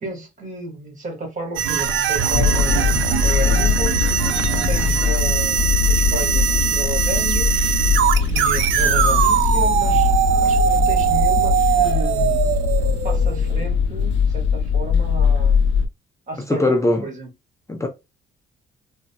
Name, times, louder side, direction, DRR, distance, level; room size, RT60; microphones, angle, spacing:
voice 1, 0.0-4.0 4.7-7.5 8.3-10.2 10.4-12.4 13.0-15.6 16.3-16.7 17.0-17.3, right 1 dB, 40° right, 1.7 m, -32 dB
sound 1, 1.6-13.7, right 8 dB, 75° right, 0.5 m, -21 dB
chicago subway, 2.3-15.9, left 6 dB, 70° left, 0.6 m, -21 dB
voice 2, 16.5-17.0 17.7-17.9, left 2 dB, 15° left, 0.5 m, -20 dB
3.8 x 2.1 x 2.2 m
cardioid pair, 90°, 20 cm